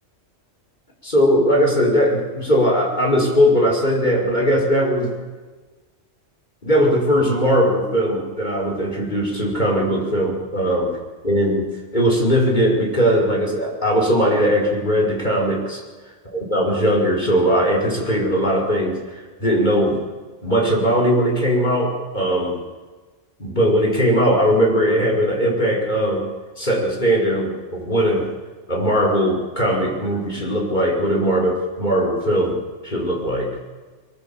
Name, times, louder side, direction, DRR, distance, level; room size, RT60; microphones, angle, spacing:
voice 1, 1.0-5.1 6.6-10.9 11.2-11.7 11.9-15.8 16.3-19.0 19.4-20.0 20.4-22.6 23.4-26.3 26.6-28.3 28.7-32.6 32.8-33.6, equal, 35° left, -1 dB, 5.5 m, -19 dB
24.0 x 23.0 x 7.1 m, 1.3 s
omnidirectional pair, 1.3 m